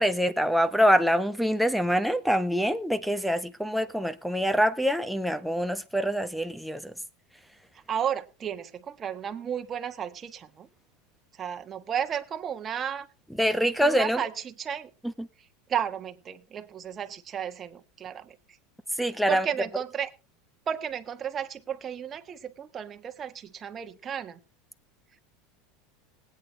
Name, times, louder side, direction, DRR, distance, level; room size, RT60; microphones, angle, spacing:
voice 1, 0.0-6.9 13.4-14.2 15.0-15.3 19.0-19.5, equal, ahead, 1.1 m, -25 dB
voice 2, 7.9-10.7 11.4-13.1 13.6-14.9 15.7-18.3 19.3-20.1 20.7-24.4, right 8 dB, 30° right, 1.4 m, -33 dB
19.5 x 9.0 x 3.3 m
supercardioid pair, 105°, 0 cm